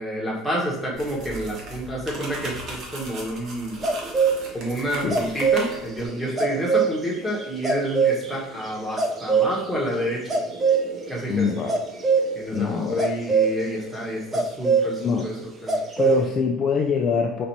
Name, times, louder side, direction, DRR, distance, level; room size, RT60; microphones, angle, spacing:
voice 1, 0.0-3.8 4.5-10.2 11.1-11.7 12.3-15.3 15.6-15.8, equal, ahead, -4 dB, 1.2 m, -29 dB
sound 1, 0.9-6.1, right 2 dB, 45° right, 1.0 m, -38 dB
sound 2, 3.8-4.4 4.8-13.6 14.3-14.9 15.2-15.3 15.7-16.2, right 5 dB, 25° right, 0.5 m, -23 dB
voice 2, 11.3-11.8 12.5-13.1 15.0-15.3 16.0-17.5, left 6 dB, 30° left, 2 dB, 0.4 m, -24 dB
4.1 x 2.7 x 4.5 m, 0.86 s
cardioid pair, 140°, 0 cm